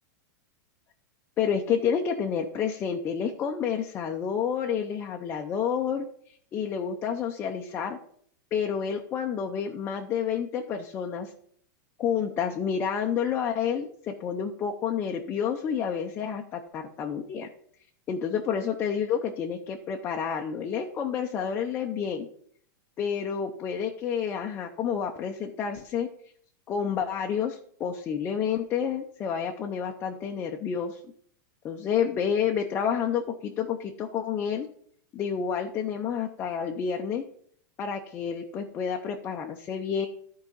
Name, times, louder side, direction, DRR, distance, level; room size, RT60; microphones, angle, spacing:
voice 1, 1.4-6.0 6.5-8.0 8.5-11.3 12.0-17.5 18.1-22.3 23.0-26.1 26.7-31.0 31.6-34.7 35.1-37.2 37.8-40.1, left 7 dB, 20° left, 2 dB, 0.6 m, -29 dB
11.5 x 4.7 x 5.4 m, 0.63 s
supercardioid pair, 160°, 11 cm